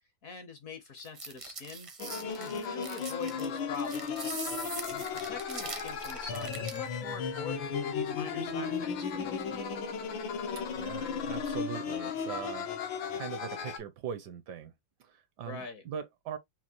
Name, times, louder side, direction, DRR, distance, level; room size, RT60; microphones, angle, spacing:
voice 1, 0.2-1.9 2.2-4.3 4.9-9.8 15.5-15.8, left 4 dB, 55° left, 1.1 m, -44 dB
sound 1, 1.0-6.9, right 3 dB, 45° right, 0.4 m, -42 dB
sound 2, 2.0-13.8, left 6 dB, 80° left, 1.6 m, -35 dB
voice 2, 10.4-14.7 15.0-16.4, right 8 dB, 70° right, 1.1 m, -41 dB
5.9 x 2.4 x 2.8 m
omnidirectional pair, 2.1 m